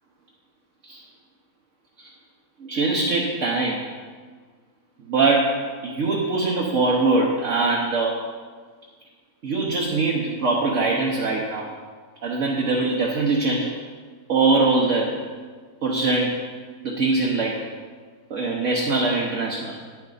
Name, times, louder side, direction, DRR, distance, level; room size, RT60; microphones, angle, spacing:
voice 1, 2.6-3.8 5.1-5.5 5.8-8.1 9.4-11.7 12.2-13.7 14.3-15.2 15.8-16.4 16.8-17.6 18.3-19.7, right 3 dB, 55° right, -3 dB, 1.3 m, -22 dB
9.8 x 7.4 x 4.0 m, 1.5 s
omnidirectional pair, 1.6 m